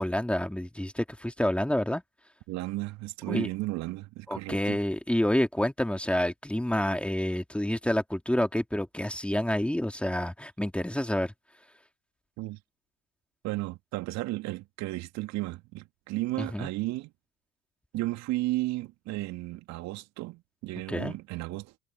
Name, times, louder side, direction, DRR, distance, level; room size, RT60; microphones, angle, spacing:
voice 1, 0.0-2.0 3.3-3.5 4.3-11.3 16.4-16.7 20.9-21.1, left 1 dB, 5° left, 3.4 m, -28 dB
voice 2, 2.5-4.8 12.4-12.6 13.4-17.1 17.9-21.7, right 19 dB, 55° right, 2.7 m, -34 dB
figure-of-eight pair, 65°, 33 cm